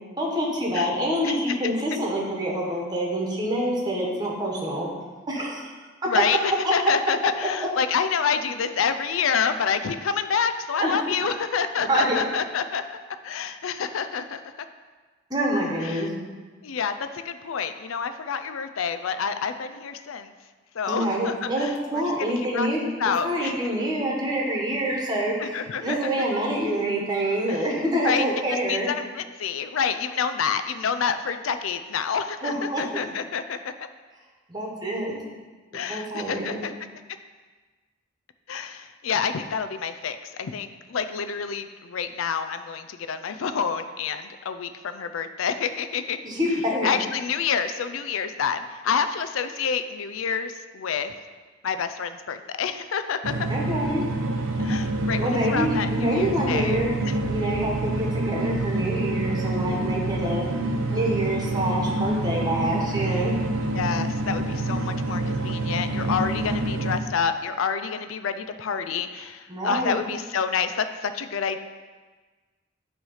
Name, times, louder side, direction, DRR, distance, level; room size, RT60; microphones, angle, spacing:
voice 1, 0.2-4.9 5.3-5.7 10.8-10.9 11.7-12.2 15.3-16.2 20.9-22.9 23.2-28.9 32.4-32.8 34.5-35.1 35.9-36.6 46.2-46.9 53.5-54.0 55.2-60.5 60.9-63.4 69.5-70.0, right 1 dB, 20° right, -2 dB, 1.3 m, -26 dB
voice 2, 1.2-1.7 6.1-12.8 13.2-14.4 15.8-16.1 16.6-20.3 20.7-23.6 25.4-26.1 27.5-27.6 28.0-28.3 28.7-33.7 35.7-36.7 38.5-46.2 46.8-51.1 51.6-53.5 54.6-57.1 63.7-71.6, left 6 dB, 75° left, 9 dB, 0.4 m, -28 dB
sound 1, 53.2-67.0, right 2 dB, 75° right, 0.8 m, -27 dB
9.1 x 3.2 x 5.5 m, 1.3 s
head